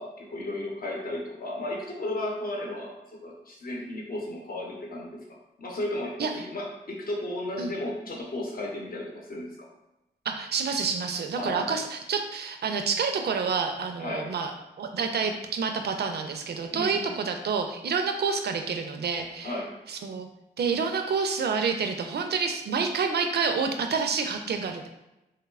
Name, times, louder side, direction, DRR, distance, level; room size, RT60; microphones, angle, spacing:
voice 1, 0.0-5.2 5.6-9.7 11.3-11.8 14.0-14.3 16.7-17.2 19.4-19.7, left 1 dB, 50° left, -2 dB, 0.8 m, -34 dB
voice 2, 10.3-14.5 14.8-19.5 19.9-20.3 20.6-24.9, right 5 dB, 60° right, 5 dB, 0.4 m, -28 dB
2.9 x 2.0 x 2.3 m, 0.93 s
supercardioid pair, 40°, 19 cm